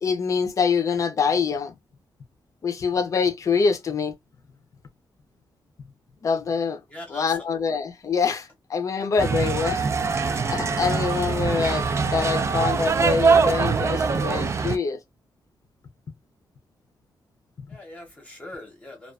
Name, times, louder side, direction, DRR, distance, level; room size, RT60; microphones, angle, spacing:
voice 1, 0.0-1.7 2.6-4.1 6.2-6.8 7.1-9.9 10.5-15.0, left 5 dB, 40° left, 0.5 m, -25 dB
voice 2, 6.9-7.4 17.7-19.1, left 1 dB, 15° left, 0.8 m, -41 dB
sound 1, 9.2-14.8, right 5 dB, 35° right, 0.3 m, -23 dB
2.3 x 2.3 x 2.3 m
wide cardioid pair, 145°, 8 cm